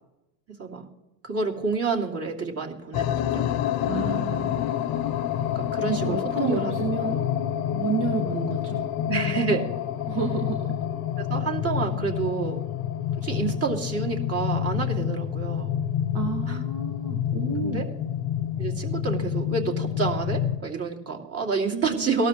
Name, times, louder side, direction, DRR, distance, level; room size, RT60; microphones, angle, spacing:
voice 1, 1.2-3.4 5.5-7.1 9.1-9.7 11.2-12.6 13.2-15.7 16.5-16.6 17.6-17.9 18.6-22.3, right 4 dB, 30° right, 0 dB, 2.6 m, -29 dB
sound 1, 2.9-20.6, left 10 dB, 50° left, 0.8 m, -28 dB
voice 2, 3.9-4.6 5.9-7.2 7.7-8.9 10.1-10.8 16.1-17.8 21.7-22.3, right 5 dB, 60° right, 1 dB, 2.0 m, -31 dB
18.5 x 12.5 x 3.1 m, 0.95 s
supercardioid pair, 100°, 47 cm